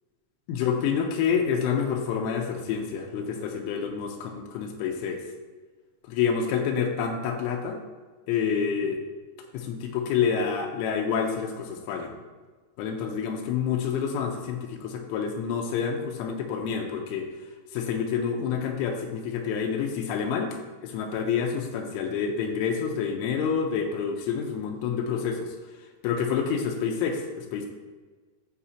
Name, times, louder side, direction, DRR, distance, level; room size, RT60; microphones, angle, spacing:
voice 1, 0.5-5.2 6.1-7.8 8.3-9.0 9.5-12.1 12.8-17.3 17.7-20.5 20.8-25.5 26.0-27.7, left 6 dB, 85° left, 2 dB, 3.3 m, -28 dB
14.0 x 5.2 x 2.9 m, 1.4 s
omnidirectional pair, 5.5 m